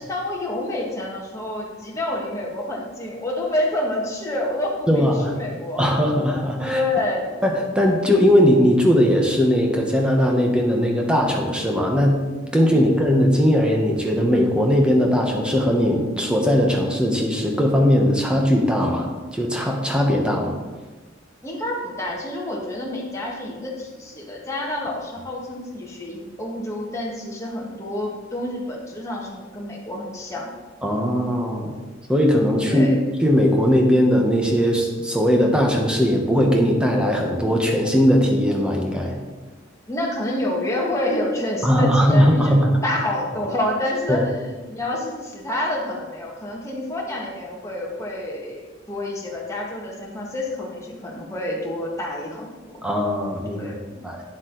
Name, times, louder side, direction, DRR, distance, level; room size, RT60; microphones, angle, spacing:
voice 1, 0.0-5.9 6.6-7.4 12.7-12.8 21.4-30.5 32.6-33.0 39.9-44.3 44.7-52.8 53.5-54.0, left 1 dB, 15° left, -3 dB, 1.6 m, -28 dB
voice 2, 4.9-5.3 5.8-6.8 7.4-12.2 12.5-20.6 30.8-31.8 32.1-32.9 33.2-39.2 41.6-42.7 44.1-44.2 52.8-53.7 54.0-54.2, equal, 5° right, 1 dB, 1.2 m, -19 dB
9.7 x 7.2 x 4.0 m, 1.3 s
head